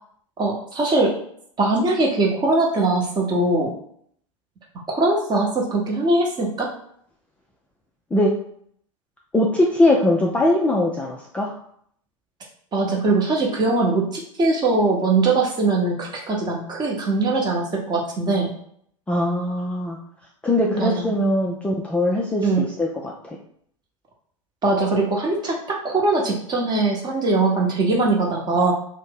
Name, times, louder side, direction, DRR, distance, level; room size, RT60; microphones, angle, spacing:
voice 1, 0.4-1.2 1.6-3.7 4.9-6.7 12.7-18.5 20.8-21.1 22.4-22.7 24.6-28.7, right 3 dB, 25° right, -1 dB, 0.9 m, -21 dB
voice 2, 9.3-11.5 19.1-20.0 20.4-23.4, left 1 dB, 5° left, -2 dB, 0.3 m, -21 dB
2.5 x 2.0 x 3.7 m, 0.65 s
hypercardioid pair, 90°, 17 cm